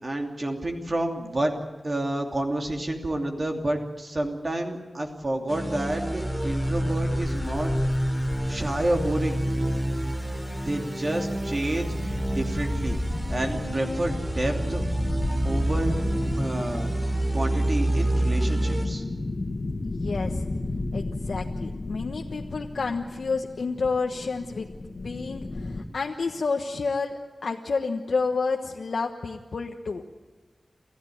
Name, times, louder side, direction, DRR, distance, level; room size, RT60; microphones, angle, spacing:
voice 1, 0.0-7.7 8.5-9.4 10.6-13.0 13.3-14.9 15.4-15.9 16.4-16.9 17.3-19.0, right 1 dB, 45° right, 3 dB, 2.8 m, -29 dB
sound 1, 5.5-18.9, right 1 dB, 15° right, 3.8 m, -28 dB
sound 2, 5.9-25.8, left 2 dB, 55° left, 2.0 m, -34 dB
voice 2, 19.8-20.4 20.9-24.7 25.0-30.0, left 4 dB, 85° left, 2 dB, 1.3 m, -30 dB
28.0 x 15.0 x 9.3 m, 1.3 s
wide cardioid pair, 70°, 0 cm